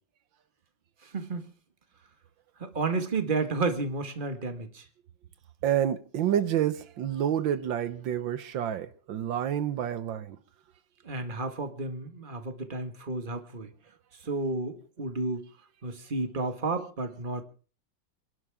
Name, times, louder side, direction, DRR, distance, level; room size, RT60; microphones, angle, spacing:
voice 1, 1.0-1.5 2.6-4.9 11.0-13.7 14.2-15.5 15.8-17.4, right 3 dB, 25° right, 1.8 m, -32 dB
voice 2, 5.6-10.4, right 10 dB, 80° right, 1.6 m, -28 dB
29.0 x 11.5 x 3.6 m
omnidirectional pair, 2.0 m